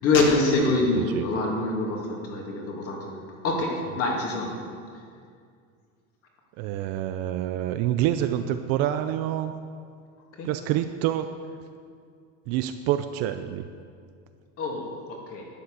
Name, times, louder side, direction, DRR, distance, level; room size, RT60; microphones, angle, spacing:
voice 1, 0.0-3.2 3.4-4.5 10.4-10.5 14.6-15.4, left 2 dB, 35° left, -1 dB, 2.7 m, -25 dB
voice 2, 0.9-1.3 6.6-9.5 10.4-11.3 12.5-13.6, right 12 dB, 40° right, 9 dB, 0.5 m, -27 dB
12.0 x 8.4 x 6.9 m, 2.2 s
supercardioid pair, 145°, 39 cm